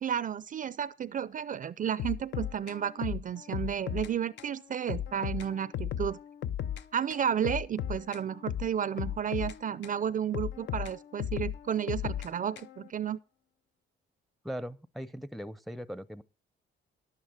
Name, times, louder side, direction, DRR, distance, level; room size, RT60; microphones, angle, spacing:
voice 1, 0.0-6.2 6.9-13.2, right 8 dB, 40° right, 0.5 m, -32 dB
sound 1, 2.0-4.1 4.4-4.5 4.9-6.8 7.1-10.0 10.3-12.9, left 10 dB, 65° left, 0.6 m, -36 dB
voice 2, 14.4-16.2, equal, ahead, 0.6 m, -39 dB
11.0 x 8.9 x 5.0 m
cardioid pair, 90°, 20 cm